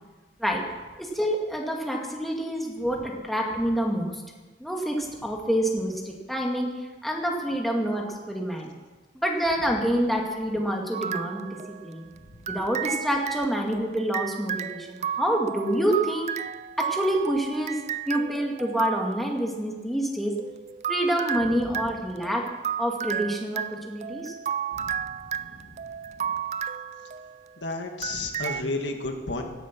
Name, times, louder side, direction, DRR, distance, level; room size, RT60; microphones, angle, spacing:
voice 1, 1.0-4.1 4.6-6.7 7.0-8.7 9.1-12.1 12.5-16.4 16.8-17.8 18.1-20.3 20.9-22.4 22.8-24.3, equal, ahead, -1 dB, 2.2 m, -27 dB
sound 1, 10.9-12.0 12.5-19.4 20.4-27.6 28.0-28.6, right 8 dB, 40° right, 0.4 m, -33 dB
voice 2, 27.6-29.4, left 2 dB, 85° left, 3 dB, 1.9 m, -32 dB
17.0 x 12.0 x 6.1 m, 1.2 s
head